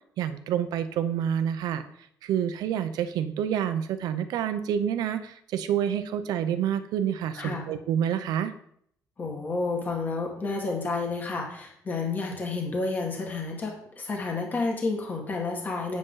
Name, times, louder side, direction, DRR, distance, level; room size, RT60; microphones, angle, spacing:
voice 1, 0.2-1.8 2.2-8.5, right 9 dB, 85° right, 11 dB, 0.8 m, -28 dB
voice 2, 7.4-7.7 9.2-16.0, left 3 dB, 25° left, 0 dB, 1.9 m, -30 dB
7.8 x 7.7 x 3.9 m, 0.67 s
cardioid pair, 155°, 7 cm